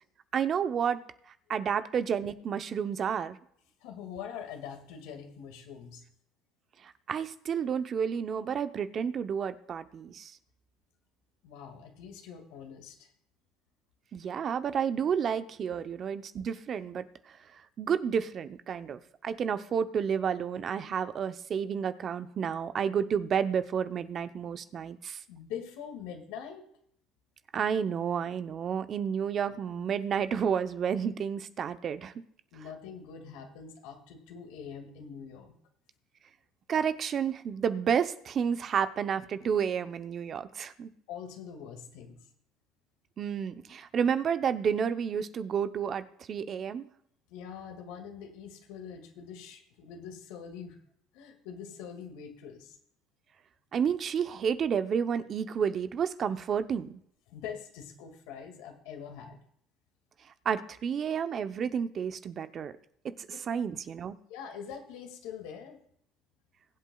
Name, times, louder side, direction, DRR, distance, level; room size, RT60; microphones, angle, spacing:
voice 1, 0.3-1.0 1.5-3.4 6.8-10.3 14.1-17.1 17.8-25.2 27.5-32.1 36.7-40.9 43.2-46.8 53.7-57.0 60.4-62.7 63.0-64.2, right 7 dB, 45° right, 11 dB, 0.7 m, -30 dB
voice 2, 3.8-6.0 11.4-13.1 25.3-26.7 32.5-35.5 41.1-42.2 47.3-50.8 51.1-52.8 57.3-59.4 63.3-63.4 64.3-65.8, left 7 dB, 80° left, 3 dB, 2.1 m, -44 dB
21.0 x 8.1 x 2.3 m, 0.67 s
supercardioid pair, 95°, 0 cm